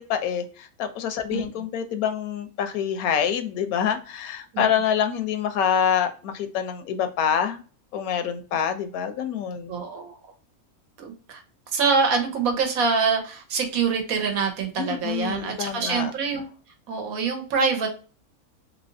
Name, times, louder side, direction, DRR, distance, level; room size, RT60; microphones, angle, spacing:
voice 1, 0.0-7.6 7.9-9.8 14.8-16.1, left 8 dB, 80° left, 9 dB, 1.0 m, -26 dB
voice 2, 9.7-10.2 11.0-11.4 11.7-16.5 16.9-17.9, right 5 dB, 80° right, 4 dB, 1.2 m, -25 dB
3.2 x 2.8 x 2.6 m, 0.37 s
omnidirectional pair, 1.5 m